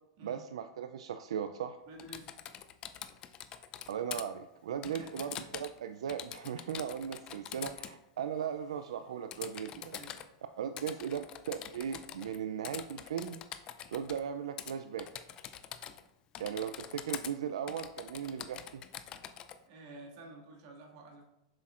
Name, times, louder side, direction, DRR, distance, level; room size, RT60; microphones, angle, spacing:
voice 1, 0.2-1.8 3.9-10.0 10.6-13.4 13.9-15.1 16.4-18.8, right 8 dB, 90° right, 8 dB, 0.4 m, -38 dB
voice 2, 1.9-2.3 4.8-5.5 9.9-10.2 19.7-21.2, right 2 dB, 55° right, -1 dB, 2.0 m, -51 dB
Typing, 2.0-4.2 4.8-5.8 6.1-7.9 9.3-10.3 10.8-12.4 12.6-14.2 14.6-14.7 15.0-16.1 16.3-17.3 17.7-19.6, left 10 dB, 25° left, 0.4 m, -44 dB
7.5 x 5.8 x 2.5 m, 0.91 s
supercardioid pair, 150°, 3 cm